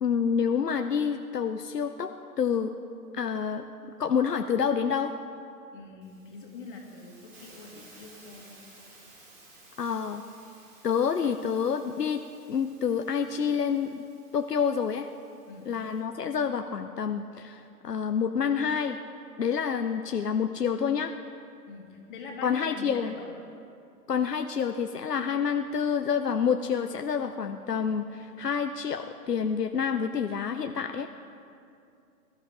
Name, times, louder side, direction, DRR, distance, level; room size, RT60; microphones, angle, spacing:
voice 1, 0.0-2.1 2.4-2.7 3.1-3.6 4.0-5.1 9.8-10.2 10.8-12.2 12.5-14.0 14.3-15.1 15.7-19.0 19.4-21.1 22.4-23.1 24.1-31.1, left 7 dB, 75° left, 7 dB, 0.8 m, -28 dB
voice 2, 5.7-8.6 15.5-15.7 21.7-23.3, left 3 dB, 30° left, 0 dB, 2.4 m, -44 dB
Hiss, 6.0-16.0, right 2 dB, 20° right, 3.0 m, -56 dB
24.0 x 13.0 x 3.7 m, 2.5 s
figure-of-eight pair, 135°, 48 cm